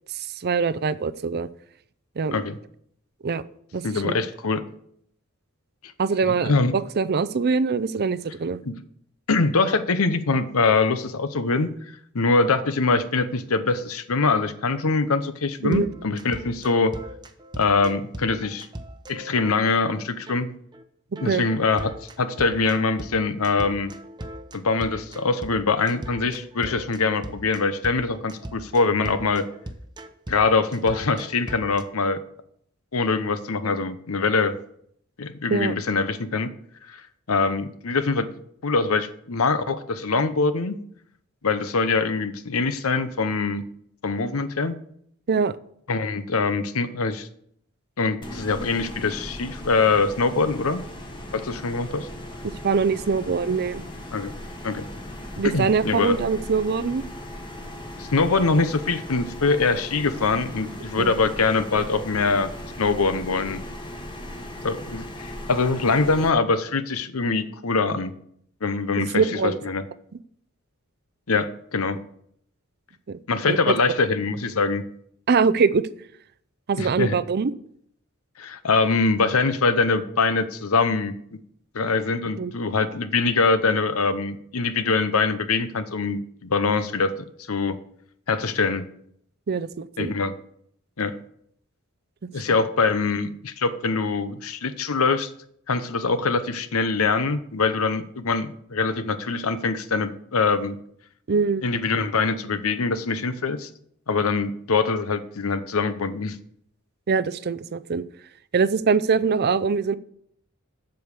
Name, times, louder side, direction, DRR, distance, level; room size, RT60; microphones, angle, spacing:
voice 1, 0.1-1.5 2.2-2.4 3.2-3.4 3.7-4.1 6.0-8.6 15.6-15.9 21.3-21.4 35.5-35.8 45.3-45.5 52.6-53.8 55.4-57.0 61.0-61.1 69.0-69.6 73.1-73.2 73.5-73.8 75.3-75.8 76.7-77.5 82.4-82.6 89.5-90.1 92.5-92.6 101.3-101.6 107.1-108.0 108.5-110.0, right 5 dB, 50° right, 14 dB, 0.5 m, -23 dB
voice 2, 3.8-4.6 6.2-6.7 8.6-8.7 9.3-11.7 12.1-16.9 17.6-18.7 19.1-20.5 21.2-21.9 22.2-23.9 24.5-29.4 30.3-32.2 32.9-34.6 35.2-36.5 36.9-37.0 37.3-38.3 38.6-40.8 41.4-43.6 44.0-44.7 45.9-47.3 48.0-50.8 51.3-52.1 54.1-54.3 54.6-54.8 55.4-56.2 58.0-62.5 62.8-63.6 64.6-68.1 68.6-69.8 71.3-72.0 73.3-74.8 76.8-77.2 78.4-81.1 81.7-87.1 87.5-87.8 88.3-88.8 90.0-90.3 91.0-91.1 92.3-95.3 95.7-100.8 101.6-103.7 104.1-106.4, left 4 dB, 80° left, 12 dB, 0.9 m, -23 dB
sound 1, 15.7-20.0 20.3-20.4 20.7-20.8 21.2-31.8, right 1 dB, 20° right, 0.8 m, -39 dB
sound 2, 48.2-66.3, left 1 dB, 20° left, 1.5 m, -38 dB
7.8 x 7.2 x 6.6 m, 0.67 s
head